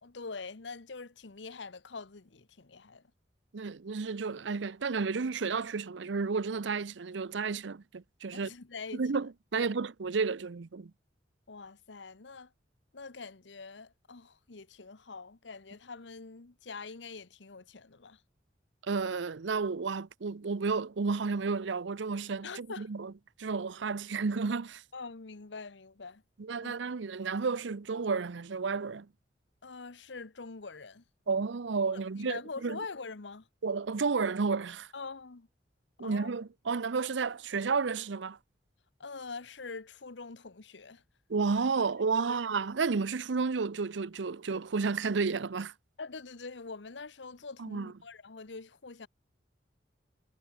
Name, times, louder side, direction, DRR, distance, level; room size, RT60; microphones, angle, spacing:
voice 1, 0.0-3.0 8.3-9.0 9.5-9.7 11.5-12.5 12.9-18.2 22.4-22.9 24.9-26.2 26.6-26.8 29.6-31.0 31.9-33.5 34.9-35.5 36.0-36.3 39.0-41.0 42.3-42.4 46.0-49.1, left 4 dB, 80° left, 1.1 m, -44 dB
voice 2, 3.5-8.5 8.9-10.9 18.8-23.1 23.4-24.8 26.4-29.1 31.3-32.8 33.6-34.9 36.0-38.4 41.3-45.7 47.6-47.9, right 4 dB, 85° right, 0.6 m, -32 dB
head